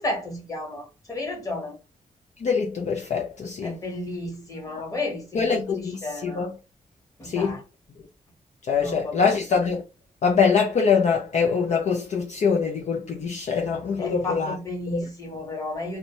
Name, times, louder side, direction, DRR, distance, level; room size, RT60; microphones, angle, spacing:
voice 1, 0.0-1.8 3.6-6.5 7.2-7.6 8.8-9.2 14.0-16.0, left 2 dB, 25° left, 1.1 m, -33 dB
voice 2, 2.4-3.8 4.7-4.8 5.3-6.5 7.2-7.5 8.7-9.8 10.2-14.6 14.9-15.0, left 5 dB, 55° left, 0.4 m, -24 dB
2.6 x 2.1 x 2.9 m
wide cardioid pair, 140°, 14 cm